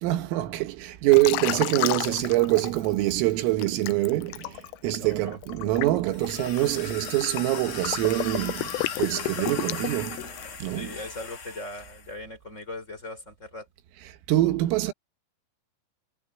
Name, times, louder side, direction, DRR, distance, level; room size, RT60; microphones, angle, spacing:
voice 1, 0.0-10.3 10.6-11.0 14.0-14.9, right 17 dB, 80° right, 4.1 m, -25 dB
Liquid, 1.1-3.1 3.6-10.6, left 18 dB, 85° left, 3.1 m, -32 dB
voice 2, 5.0-5.4 10.7-13.7, left 2 dB, 15° left, 4.4 m, -39 dB
sound 1, 6.1-12.1, left 6 dB, 40° left, 2.9 m, -38 dB
omnidirectional pair, 6.0 m